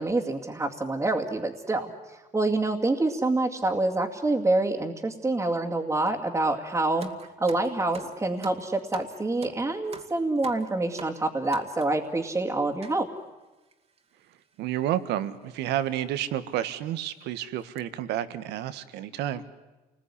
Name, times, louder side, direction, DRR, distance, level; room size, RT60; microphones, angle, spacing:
voice 1, 0.0-7.1 7.4-13.1, right 2 dB, 15° right, -4 dB, 2.4 m, -27 dB
sound 1, 7.0-12.1 12.8-13.0 13.7-13.8 14.0-14.2 15.1-15.3 15.8-15.9 16.4-16.5 17.0-17.2 17.6-17.8, right 5 dB, 40° right, 2.3 m, -45 dB
voice 2, 14.6-19.4, right 12 dB, 85° right, 13 dB, 1.5 m, -30 dB
28.0 x 20.5 x 10.0 m, 1.1 s
cardioid pair, 110°, 17 cm